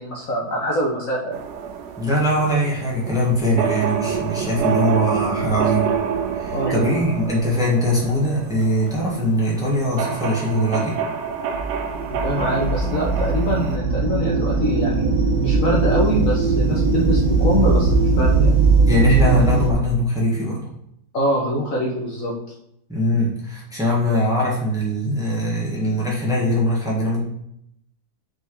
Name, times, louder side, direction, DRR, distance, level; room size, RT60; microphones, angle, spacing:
voice 1, 0.0-1.4 6.5-7.0 12.1-15.1 15.4-18.5 21.1-22.3, equal, 55° left, -3 dB, 1.4 m, -24 dB
sound 1, 1.3-13.8, right 6 dB, 90° right, 1.4 m, -28 dB
voice 2, 2.0-6.0 6.3-11.0 18.8-20.7 22.9-27.2, equal, ahead, -5 dB, 1.6 m, -21 dB
sound 2, 11.5-19.7, right 4 dB, 65° right, 1.2 m, -19 dB
5.3 x 4.7 x 4.9 m, 0.77 s
omnidirectional pair, 1.9 m